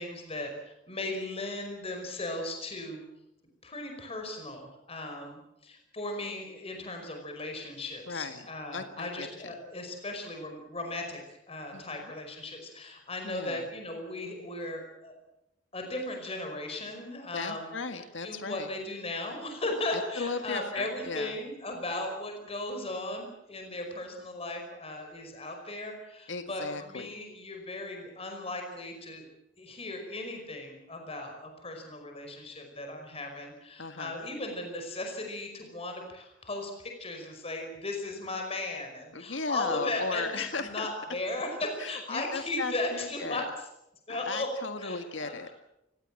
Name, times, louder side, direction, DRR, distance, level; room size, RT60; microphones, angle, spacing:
voice 1, 0.0-3.0 3.6-11.2 11.5-15.1 15.7-17.7 18.2-29.3 29.6-43.4 44.1-44.5 44.8-45.4, left 2 dB, 30° left, 4 dB, 5.2 m, -37 dB
voice 2, 8.1-8.5 8.7-9.5 11.7-12.1 13.2-13.7 17.3-18.7 19.9-21.4 26.3-27.2 33.8-34.2 39.1-40.9 41.8-43.5 44.1-45.5, left 4 dB, 80° left, 7 dB, 1.8 m, -36 dB
29.0 x 17.0 x 7.7 m, 0.86 s
head